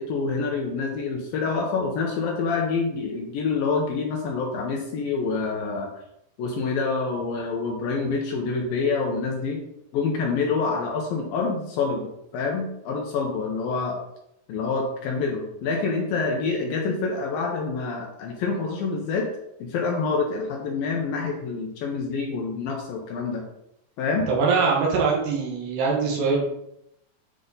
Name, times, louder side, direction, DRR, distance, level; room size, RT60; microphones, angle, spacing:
voice 1, 0.0-5.9 6.4-9.6 9.9-14.0 14.5-19.3 19.6-23.5 24.0-24.3, left 4 dB, 70° left, 0 dB, 2.4 m, -27 dB
voice 2, 24.3-26.4, right 4 dB, 75° right, -3 dB, 3.3 m, -22 dB
9.9 x 5.0 x 4.0 m, 0.80 s
omnidirectional pair, 4.9 m